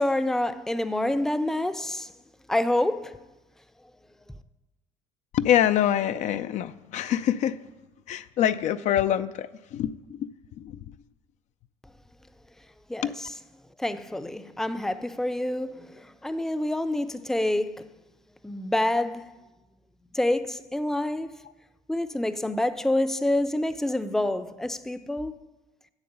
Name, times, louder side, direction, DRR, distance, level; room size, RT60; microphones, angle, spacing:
voice 1, 0.0-2.1 2.5-3.2 12.9-13.1 13.8-17.8 18.4-19.3 20.1-21.4 21.9-25.3, left 1 dB, 5° left, 0.6 m, -27 dB
voice 2, 5.3-7.6 8.1-10.3 10.6-10.8 13.0-13.1, left 10 dB, 60° left, 0.5 m, -25 dB
8.9 x 7.6 x 6.8 m
supercardioid pair, 85°, 14 cm